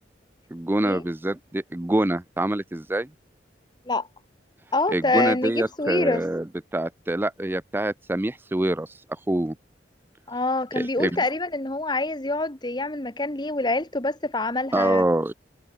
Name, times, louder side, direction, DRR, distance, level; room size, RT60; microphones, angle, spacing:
voice 1, 0.5-3.1 4.9-6.4 6.7-8.9 9.3-9.6 10.8-11.2 14.7-15.3, right 1 dB, 10° right, 0.5 m, -25 dB
voice 2, 4.7-6.2 10.3-15.0, left 2 dB, 25° left, 1.5 m, -26 dB
head